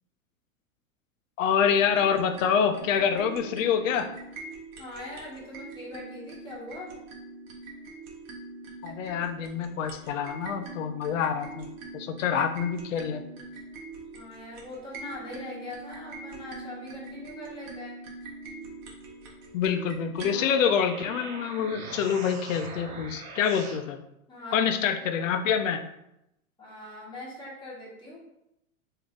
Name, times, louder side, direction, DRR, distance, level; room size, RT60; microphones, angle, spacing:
voice 1, 1.4-4.1 8.8-11.7 11.9-13.2 19.5-24.0 24.5-25.8, left 7 dB, 60° left, 8 dB, 0.6 m, -26 dB
sound 1, 1.6-20.5, right 3 dB, 45° right, 1.0 m, -43 dB
voice 2, 4.8-6.9 14.1-18.0 24.3-24.6 26.6-28.2, left 1 dB, 10° left, -6 dB, 1.4 m, -41 dB
sound 2, 20.0-23.8, right 3 dB, 90° right, 0.9 m, -41 dB
3.3 x 2.7 x 3.6 m, 0.85 s
hypercardioid pair, 110°, 43 cm